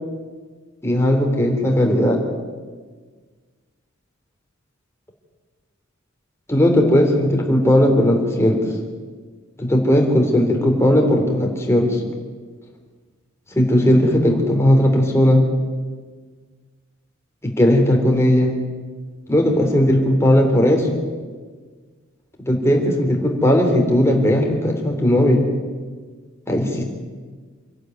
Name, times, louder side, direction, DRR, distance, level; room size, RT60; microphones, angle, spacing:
voice 1, 0.8-2.2 6.5-8.6 9.6-12.0 13.5-15.4 17.4-18.5 19.3-21.0 22.4-25.4 26.5-26.8, left 1 dB, 15° left, 1 dB, 3.5 m, -17 dB
26.5 x 11.5 x 9.3 m, 1.5 s
head